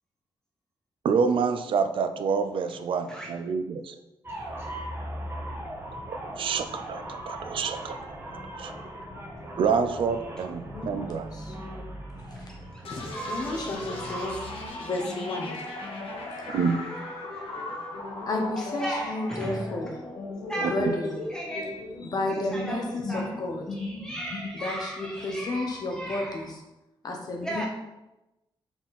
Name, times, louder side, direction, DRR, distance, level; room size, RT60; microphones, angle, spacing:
voice 1, 1.0-4.0 6.4-8.0 8.3-8.7 9.6-11.3 16.5-16.8 20.8-20.9, right 5 dB, 65° right, 9 dB, 0.5 m, -27 dB
sound 1, 4.2-14.7, right 1 dB, 25° right, 1.3 m, -39 dB
voice 2, 10.7-11.5 12.9-13.0 13.3-14.3 14.8-15.5 16.4-16.5 18.3-20.0 20.7-21.1 22.0-23.6 24.6-26.5 27.0-27.7, left 2 dB, 45° left, 2 dB, 1.1 m, -32 dB
voice 3, 12.3-12.8 13.1-14.7 15.4-15.8 16.5-17.9 18.6-19.8 20.5-21.9 22.3-23.4 23.7-26.5 27.4-27.7, right 1 dB, 5° left, -2 dB, 0.9 m, -38 dB
sound 2, 12.8-26.5, left 2 dB, 80° left, 1.4 m, -38 dB
5.9 x 4.4 x 4.1 m, 0.97 s
wide cardioid pair, 165°, 9 cm